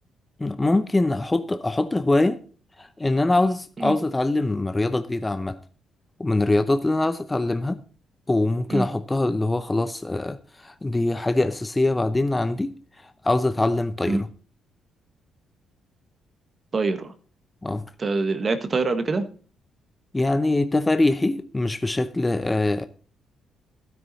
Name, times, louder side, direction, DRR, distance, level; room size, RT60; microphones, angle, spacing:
voice 1, 0.4-2.4 2.8-5.6 6.2-7.8 8.3-12.7 13.0-14.3 17.6-17.9 20.1-22.8, left 2 dB, 15° left, 0.7 m, -23 dB
voice 2, 16.7-17.1 18.0-19.3, right 3 dB, 35° right, 1.3 m, -24 dB
12.5 x 9.4 x 4.1 m
cardioid pair, 90°, 0 cm